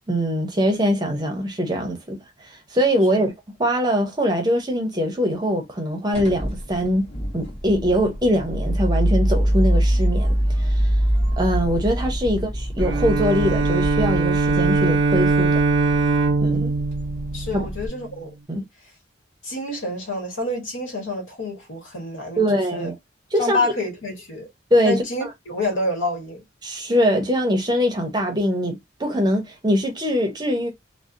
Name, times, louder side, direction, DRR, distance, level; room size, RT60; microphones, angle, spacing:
voice 1, 0.1-3.3 3.6-7.1 7.3-10.9 11.4-15.5 16.4-16.7 17.5-17.7 18.5-18.6 22.4-22.9 23.3-23.6 24.7-25.3 26.6-30.7, equal, 20° right, 0.6 m, -22 dB
sound 1, 6.1-17.9, equal, 30° left, 1.1 m, -24 dB
Bowed string instrument, 12.8-18.0, right 4 dB, 65° right, 0.3 m, -21 dB
voice 2, 17.3-18.3 19.4-22.4 22.7-22.9 23.4-24.5 24.8-26.4, left 2 dB, 85° left, 1.0 m, -28 dB
2.7 x 2.0 x 2.4 m
head